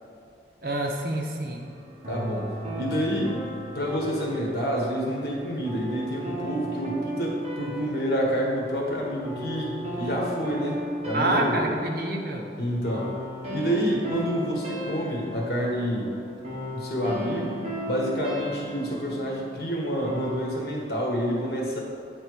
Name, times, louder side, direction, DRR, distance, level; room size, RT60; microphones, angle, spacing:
voice 1, 0.6-1.7 11.1-12.5, right 1 dB, 55° right, 1 dB, 0.7 m, -27 dB
sound 1, 1.6-20.5, equal, 35° right, 1.1 m, -36 dB
voice 2, 2.1-3.4 3.7-11.6 12.6-13.1 13.5-16.1 16.7-17.6 17.8-21.8, equal, 65° left, -2 dB, 1.3 m, -28 dB
9.1 x 3.4 x 4.6 m, 2.4 s
head